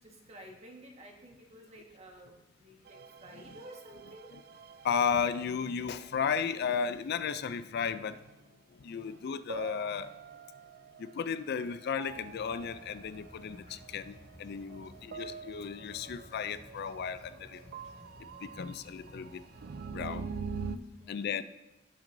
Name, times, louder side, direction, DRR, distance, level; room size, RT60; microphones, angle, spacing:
voice 1, 0.0-4.4 14.8-15.2 21.0-21.4, right 1 dB, 35° right, 0 dB, 1.5 m, -52 dB
sound 1, 2.9-6.7 7.9-8.4 8.9-20.8, right 5 dB, 50° right, 0.4 m, -46 dB
voice 2, 4.8-8.2 8.7-10.1 11.0-17.7 18.2-19.4 19.9-20.3 21.1-21.4, left 6 dB, 55° left, 13 dB, 0.4 m, -34 dB
sound 2, 12.0-19.6, equal, 35° left, 2.7 m, -55 dB
16.5 x 6.0 x 2.7 m, 0.96 s
head